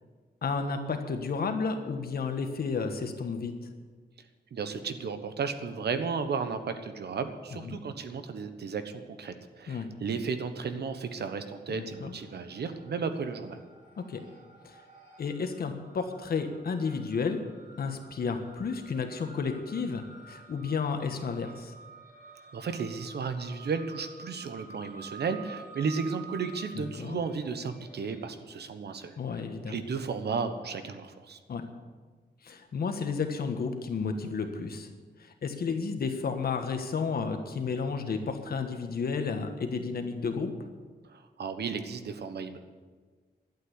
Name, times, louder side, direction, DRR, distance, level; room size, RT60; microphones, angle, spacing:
voice 1, 0.4-3.5 7.6-7.8 9.7-9.9 11.7-12.1 14.0-14.2 14.6-14.8 15.2-17.4 17.8-21.7 26.7-27.2 29.2-29.8 31.5-31.7 32.4-34.9 35.2-40.5, left 5 dB, 60° left, 6 dB, 1.4 m, -32 dB
voice 2, 4.5-13.6 22.5-31.4 41.1-42.6, right 5 dB, 70° right, 9 dB, 1.2 m, -34 dB
sound 1, 10.8-11.3 11.6-28.2, right 4 dB, 45° right, 3.4 m, -51 dB
12.0 x 8.8 x 9.9 m, 1.5 s
wide cardioid pair, 170°, 18 cm